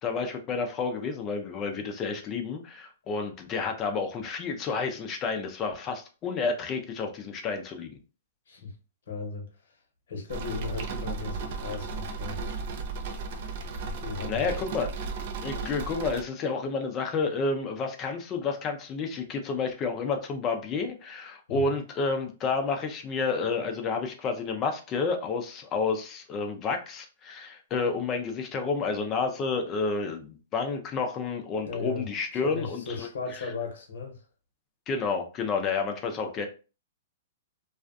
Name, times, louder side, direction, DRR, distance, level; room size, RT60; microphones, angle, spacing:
voice 1, 0.0-7.9 14.3-14.9 15.4-33.5 34.9-36.5, left 4 dB, 30° left, 0.5 m, -30 dB
voice 2, 9.1-9.8 10.1-12.4 13.8-14.5 21.5-21.7 31.7-32.1 32.3-34.2, left 4 dB, 75° left, 0.9 m, -36 dB
sound 1, 10.3-16.2, right 4 dB, 55° right, 0.4 m, -35 dB
2.4 x 2.2 x 2.4 m
hypercardioid pair, 130°, 0 cm